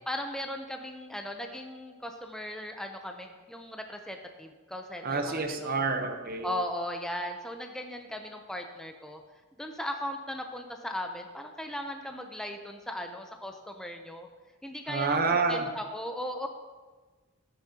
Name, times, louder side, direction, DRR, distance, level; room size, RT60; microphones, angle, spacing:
voice 1, 0.1-5.7 6.4-9.2 9.6-14.3 14.6-15.2 15.5-16.5, left 1 dB, 5° left, 4 dB, 0.6 m, -37 dB
voice 2, 5.0-6.5 14.9-15.7, right 4 dB, 45° right, 5 dB, 0.9 m, -28 dB
13.5 x 9.8 x 2.9 m, 1.3 s
head